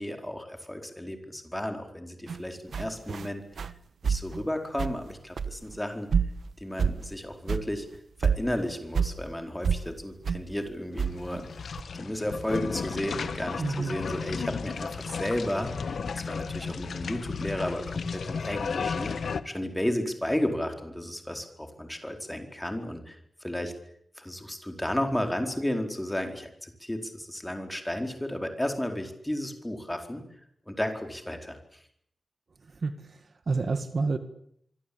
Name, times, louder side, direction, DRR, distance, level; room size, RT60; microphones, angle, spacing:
voice 1, 0.0-3.4 4.0-6.1 6.6-7.9 8.2-11.5 11.9-19.1 19.4-23.1 23.4-23.7 24.2-30.2 30.7-31.6, left 1 dB, 10° left, 5 dB, 4.5 m, -33 dB
sound 1, 2.3-2.4 2.7-3.3 3.6-3.8 4.0-4.4 4.8-5.1 5.4-5.7 6.1-6.5 6.8-7.1 7.5-7.7 7.9-8.0 8.2-9.2 9.6-9.9 10.3-10.4 11.0-11.4 11.8-11.9, right 6 dB, 90° right, 1.2 m, -28 dB
sound 2, 10.9-19.4, left 5 dB, 80° left, 1.6 m, -34 dB
voice 2, 13.6-14.0 32.8-33.2 33.5-34.2, right 4 dB, 50° right, 10 dB, 1.9 m, -28 dB
25.5 x 25.0 x 8.7 m, 0.70 s
wide cardioid pair, 165°, 0 cm